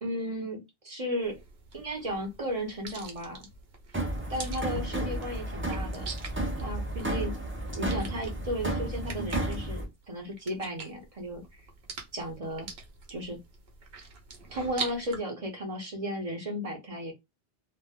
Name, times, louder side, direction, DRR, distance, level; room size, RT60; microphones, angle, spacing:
voice 1, 0.0-1.4 1.7-3.5 4.3-6.1 6.6-7.4 7.7-11.6 12.1-12.7 13.1-13.4 14.5-17.1, equal, 40° right, 2 dB, 0.8 m, -35 dB
sound 1, 1.2-15.2, right 4 dB, 75° right, 1.0 m, -44 dB
sound 2, 3.9-9.9, right 1 dB, 15° right, 0.4 m, -32 dB
2.4 x 2.1 x 3.4 m, 0.21 s
omnidirectional pair, 1.0 m